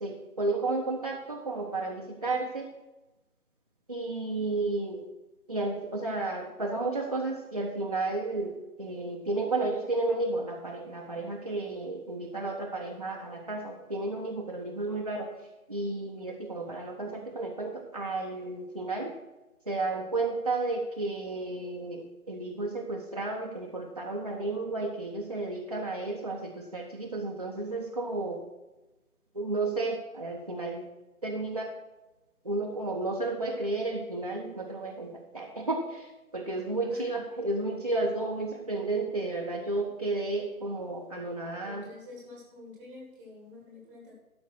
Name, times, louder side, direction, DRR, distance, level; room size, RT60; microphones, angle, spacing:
voice 1, 0.0-2.7 3.9-5.0 5.5-15.3 15.7-19.1 19.7-28.4 29.3-30.9 31.2-31.7 32.4-41.8, right 2 dB, 25° right, -2 dB, 0.6 m, -32 dB
voice 2, 41.6-44.1, left 2 dB, 5° right, -3 dB, 1.1 m, -48 dB
12.5 x 5.2 x 6.1 m, 1.1 s
figure-of-eight pair, 150°, 45 cm